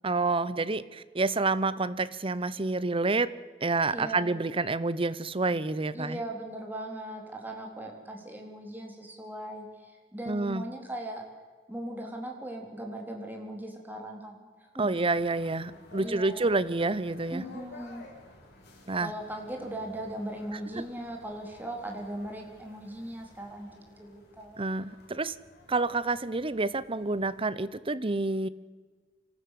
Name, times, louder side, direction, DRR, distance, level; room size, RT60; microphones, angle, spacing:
voice 1, 0.0-3.3 3.6-6.2 10.3-10.6 14.8-17.4 18.9-19.1 20.8-20.9 24.6-25.4 25.7-28.5, right 3 dB, 30° right, 16 dB, 0.8 m, -28 dB
voice 2, 3.9-4.4 5.9-11.2 11.7-14.5 14.7-15.0 16.0-16.5 17.3-18.0 19.0-24.6, right 1 dB, 10° right, 1 dB, 4.0 m, -39 dB
sound 1, 14.9-27.5, left 2 dB, 60° left, 6.0 m, -53 dB
25.5 x 14.5 x 8.5 m, 1.4 s
head